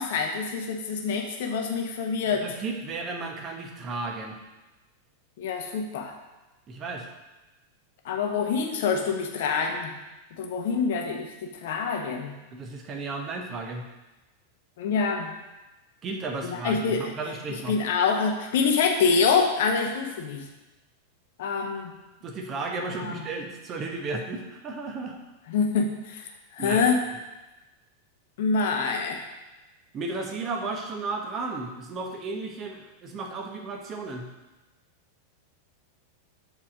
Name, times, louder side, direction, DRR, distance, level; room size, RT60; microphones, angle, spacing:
voice 1, 0.0-2.5 5.4-6.1 8.0-9.9 10.4-11.3 11.5-12.3 14.8-15.3 16.4-17.1 17.7-20.4 21.4-21.9 22.8-23.2 25.5-26.3 26.5-27.0 28.4-29.2, left 5 dB, 55° left, 3 dB, 1.0 m, -26 dB
voice 2, 2.3-4.4 6.7-7.1 12.5-13.8 16.0-17.8 22.2-25.2 26.6-26.8 29.9-34.3, right 3 dB, 30° right, 2 dB, 1.2 m, -34 dB
7.3 x 4.4 x 5.0 m, 1.1 s
figure-of-eight pair, 90°, 0 cm